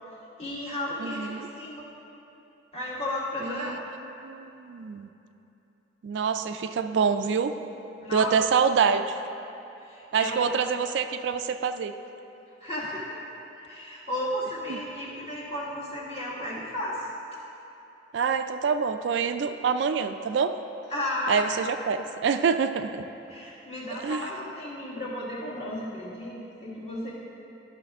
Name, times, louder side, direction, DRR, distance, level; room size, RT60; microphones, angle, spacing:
voice 1, 0.4-1.9 2.7-3.8 8.0-8.3 9.8-10.5 12.6-13.1 13.6-17.1 20.9-21.6 23.3-27.1, left 1 dB, 35° left, -7 dB, 1.7 m, -33 dB
voice 2, 1.0-1.5 3.4-3.8 4.2-5.1 6.0-7.5 8.1-9.1 10.1-11.9 14.7-14.8 18.1-20.5 21.3-23.0 24.0-24.2, right 6 dB, 70° right, 9 dB, 0.3 m, -26 dB
12.0 x 5.7 x 3.5 m, 2.9 s
head